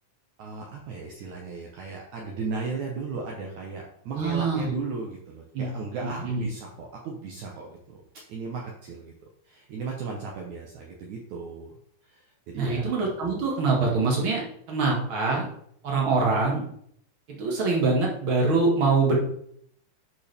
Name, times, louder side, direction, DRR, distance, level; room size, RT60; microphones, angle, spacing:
voice 1, 0.4-8.0 8.3-9.1 9.5-11.7 12.1-12.2 12.5-12.9, right 4 dB, 65° right, -1 dB, 2.0 m, -35 dB
voice 2, 4.1-4.7 5.5-5.7 6.0-6.5 12.5-14.4 14.7-15.5 15.8-16.7 17.4-19.2, right 3 dB, 40° right, -2 dB, 2.2 m, -24 dB
11.0 x 5.3 x 3.5 m, 0.67 s
omnidirectional pair, 4.4 m